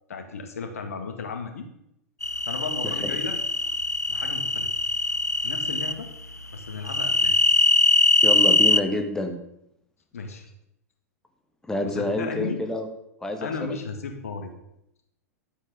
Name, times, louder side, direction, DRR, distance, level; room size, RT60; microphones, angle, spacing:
voice 1, 0.1-1.7 2.5-3.4 4.1-4.7 5.4-6.1 6.5-7.3 10.1-10.5 11.8-12.6 13.4-14.5, left 4 dB, 65° left, 4 dB, 1.9 m, -34 dB
sound 1, 2.2-5.9 6.9-8.8, left 2 dB, 90° left, 0.6 m, -22 dB
voice 2, 8.2-9.4 11.7-12.9 13.2-13.7, left 1 dB, 5° left, 5 dB, 1.5 m, -28 dB
11.0 x 8.3 x 5.2 m, 0.80 s
figure-of-eight pair, 95°, 9 cm